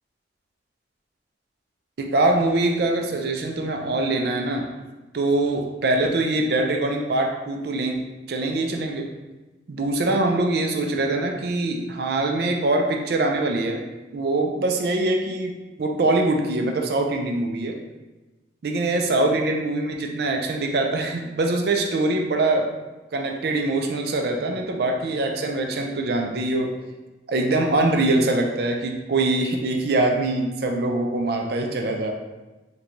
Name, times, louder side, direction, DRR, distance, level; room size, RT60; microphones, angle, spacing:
voice 1, 2.0-4.7 5.1-9.1 9.7-13.8 14.1-17.8 18.6-22.7 23.1-26.7 27.3-32.1, right 2 dB, 55° right, 2 dB, 0.4 m, -23 dB
3.9 x 2.2 x 2.9 m, 1.1 s
head